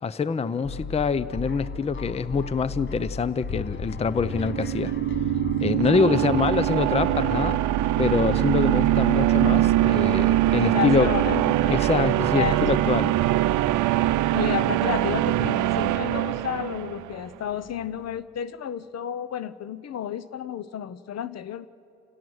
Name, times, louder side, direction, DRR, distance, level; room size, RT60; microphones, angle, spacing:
voice 1, 0.0-4.9 5.6-7.6 8.0-11.1 11.7-13.2, left 5 dB, 20° left, 16 dB, 0.5 m, -25 dB
sound 1, 0.6-18.2, left 5 dB, 40° left, 1.1 m, -38 dB
sound 2, 4.2-17.1, right 14 dB, 80° right, 0.6 m, -23 dB
voice 2, 5.9-6.2 10.6-11.9 12.3-12.9 14.3-21.7, left 9 dB, 55° left, 15 dB, 0.8 m, -31 dB
29.5 x 17.0 x 6.4 m, 2.9 s
cardioid pair, 90°, 30 cm